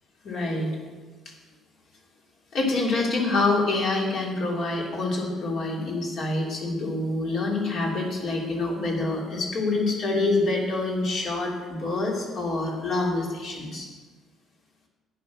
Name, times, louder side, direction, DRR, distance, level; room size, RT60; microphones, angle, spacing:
voice 1, 0.2-0.7 2.5-13.9, left 2 dB, 50° left, -1 dB, 3.2 m, -26 dB
11.0 x 9.3 x 6.2 m, 1.3 s
cardioid pair, 150°, 0 cm